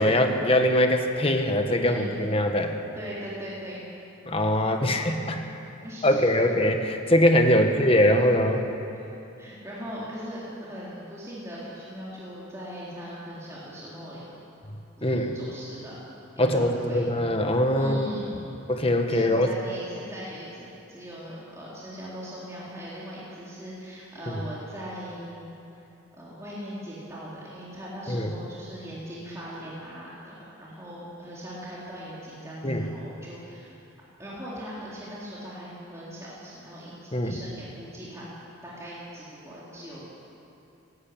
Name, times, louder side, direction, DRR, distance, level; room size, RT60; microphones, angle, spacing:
voice 1, 0.0-2.7 4.3-5.4 6.0-8.6 15.0-15.3 16.4-18.2 18.7-19.5 24.3-24.4 28.1-28.3 32.6-32.8 37.1-37.4, left 1 dB, 30° left, 4 dB, 1.4 m, -22 dB
voice 2, 3.0-3.8 4.8-5.1 5.8-6.2 7.5-7.7 8.9-9.1 9.4-14.2 15.0-16.0 16.4-17.0 17.8-18.4 19.1-25.6 26.1-30.3 30.6-33.7 34.2-38.3 38.6-40.1, equal, 15° right, -8 dB, 3.7 m, -40 dB
19.0 x 16.5 x 8.7 m, 2.9 s
head